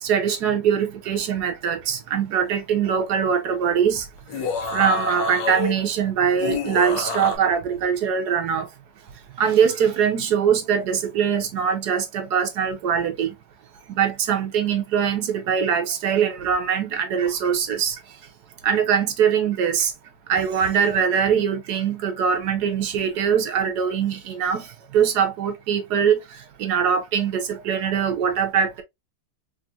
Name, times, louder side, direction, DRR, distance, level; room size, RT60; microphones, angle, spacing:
voice 1, 0.0-8.7 9.1-13.4 13.9-18.2 18.6-19.9 20.3-28.8, right 7 dB, 65° right, 1.0 m, -22 dB
sound 1, 4.2-5.8 6.4-7.4, left 3 dB, 65° left, 1.4 m, -27 dB
4.3 x 2.4 x 2.7 m
omnidirectional pair, 2.3 m